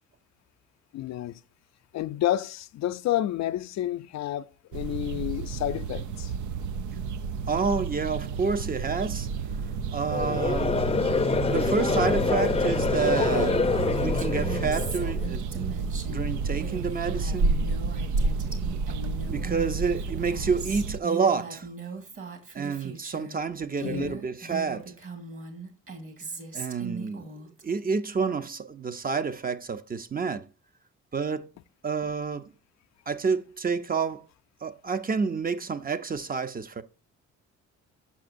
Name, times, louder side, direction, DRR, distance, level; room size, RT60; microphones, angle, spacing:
voice 1, 0.9-1.4 1.9-6.3 23.8-24.1, left 13 dB, 65° left, 0.4 m, -30 dB
sound 1, 4.7-21.0, right 4 dB, 75° right, 0.6 m, -31 dB
voice 2, 7.5-9.3 9.9-10.8 11.5-13.6 14.0-15.7 16.1-17.5 19.3-21.7 22.5-24.9 26.5-27.3 27.6-30.5 31.1-31.5 31.8-32.5 33.1-34.3 34.6-36.8, right 5 dB, 30° right, 0.7 m, -29 dB
Conversation / Crowd, 10.0-15.3, left 4 dB, 20° left, 0.6 m, -26 dB
Female speech woman speaking, 13.3-23.4 23.7-27.6, right 4 dB, 45° right, 2.1 m, -39 dB
7.3 x 6.1 x 2.5 m
cardioid pair, 90°, 30 cm